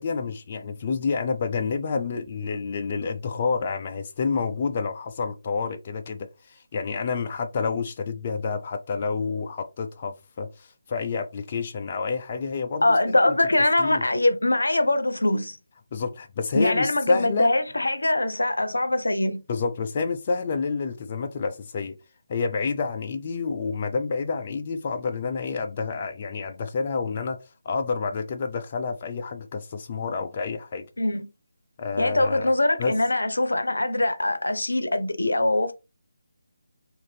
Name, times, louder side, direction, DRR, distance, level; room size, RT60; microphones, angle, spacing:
voice 1, 0.0-13.4 13.8-14.1 15.9-17.5 19.5-22.0 22.3-27.4 27.7-30.9 31.8-32.5 32.8-33.0, left 5 dB, 35° left, 0.3 m, -29 dB
voice 2, 12.8-15.6 16.5-19.4 31.0-31.3 32.0-35.7, left 2 dB, 80° left, 0.6 m, -23 dB
3.8 x 2.5 x 3.2 m
figure-of-eight pair, 155°, 0 cm